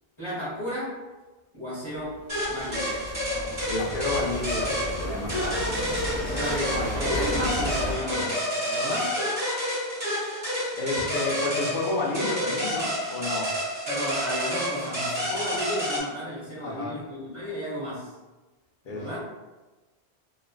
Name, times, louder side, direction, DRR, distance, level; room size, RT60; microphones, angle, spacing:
voice 1, 0.2-1.0 1.5-2.2 2.5-3.0 6.1-9.2 13.9-18.1 18.8-19.2, equal, 30° left, -11 dB, 1.0 m, -33 dB
sound 1, 2.0-7.9, equal, 70° right, 1.0 m, -34 dB
sound 2, 2.3-16.0, equal, 30° right, 1.6 m, -29 dB
voice 2, 3.7-6.2 6.7-6.9 7.3-7.4 8.1-8.3 10.7-13.6 16.6-17.0 18.9-19.1, left 2 dB, 60° left, -1 dB, 0.6 m, -31 dB
3.0 x 2.3 x 2.2 m, 1.2 s
omnidirectional pair, 1.2 m